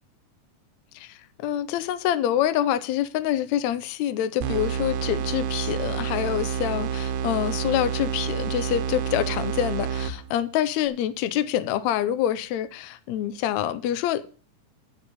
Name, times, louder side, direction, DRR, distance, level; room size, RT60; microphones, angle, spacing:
voice 1, 0.9-14.3, left 11 dB, 75° left, 12 dB, 1.8 m, -26 dB
sound 1, 4.4-10.5, right 7 dB, 85° right, 2.5 m, -29 dB
10.5 x 5.8 x 6.9 m, 0.39 s
omnidirectional pair, 3.7 m